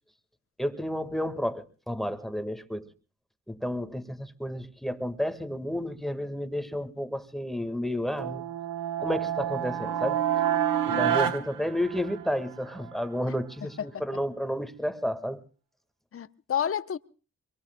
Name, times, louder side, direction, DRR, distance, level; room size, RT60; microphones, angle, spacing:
voice 1, 0.6-2.9 3.5-8.4 9.0-10.2 10.8-15.4, equal, ahead, 1.6 m, -31 dB
sound 1, 8.1-12.5, right 10 dB, 75° right, 1.1 m, -28 dB
voice 2, 10.9-11.5 13.8-14.0 16.1-17.0, left 8 dB, 40° left, 0.7 m, -32 dB
25.0 x 23.0 x 2.2 m
supercardioid pair, 40°, 34 cm